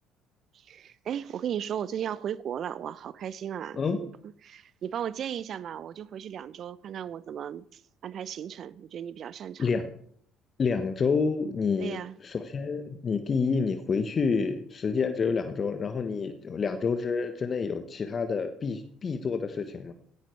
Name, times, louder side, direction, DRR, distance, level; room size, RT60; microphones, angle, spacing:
voice 1, 0.5-4.1 4.4-9.7 11.8-12.2, right 9 dB, 50° right, 0.6 m, -36 dB
voice 2, 9.6-9.9 10.6-12.0 12.2-19.9, left 5 dB, 40° left, 1.2 m, -28 dB
16.5 x 15.5 x 3.4 m
hypercardioid pair, 55°, 0 cm